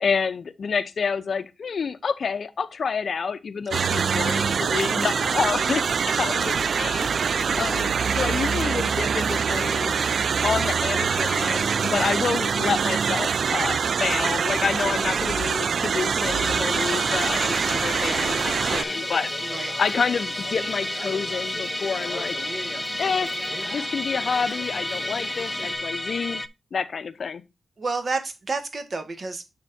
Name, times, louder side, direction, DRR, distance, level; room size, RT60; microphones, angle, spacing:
voice 1, 0.0-7.1 7.6-10.0 10.4-19.3 19.8-22.4 23.0-23.4 23.7-26.4 26.7-27.4, left 5 dB, 60° left, 0.6 m, -28 dB
voice 2, 3.7-4.2 19.5-19.7 27.8-29.4, right 3 dB, 45° right, 1.7 m, -30 dB
sound 1, 3.7-18.8, right 6 dB, 65° right, 0.3 m, -24 dB
Musical instrument, 16.2-26.5, left 2 dB, 20° left, 0.5 m, -31 dB
Bird, 16.7-25.8, equal, 20° right, 2.0 m, -37 dB
7.1 x 6.8 x 2.6 m
wide cardioid pair, 110°, 0 cm